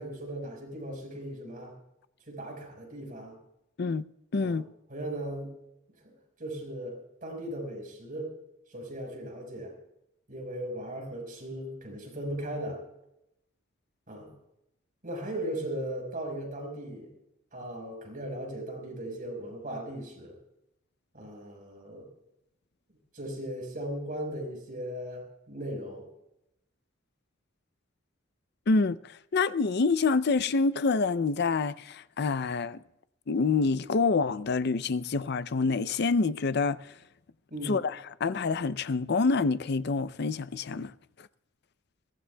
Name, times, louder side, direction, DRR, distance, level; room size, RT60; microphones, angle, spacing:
voice 1, 0.0-1.7 2.3-3.4 4.4-4.6 4.9-5.5 6.0-6.1 6.4-8.3 8.7-9.7 10.3-12.8 14.1-14.3 15.0-17.1 17.5-20.4 21.1-22.1 23.1-26.0 37.5-37.8, right 1 dB, 45° right, 4.7 m, -37 dB
voice 2, 4.3-4.7 28.7-32.8 33.3-36.9 37.6-40.9, left 4 dB, 55° left, 0.5 m, -27 dB
22.5 x 18.0 x 2.3 m
head